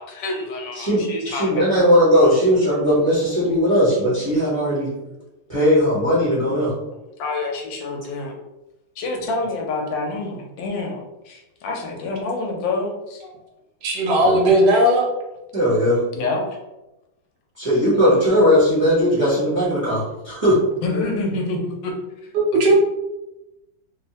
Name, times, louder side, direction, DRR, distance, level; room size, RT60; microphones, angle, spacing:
voice 1, 0.0-1.9 7.2-8.4 9.0-13.3 16.1-16.6 20.8-21.9 22.2-22.7, left 3 dB, 85° left, 1 dB, 1.3 m, -27 dB
voice 2, 0.8-4.9 5.5-6.7 14.2-14.4 15.5-16.0 17.6-20.6, equal, 30° right, -10 dB, 0.6 m, -18 dB
voice 3, 13.8-15.1 22.3-22.7, right 1 dB, 75° right, -1 dB, 1.2 m, -16 dB
3.4 x 2.0 x 2.7 m, 0.97 s
omnidirectional pair, 2.0 m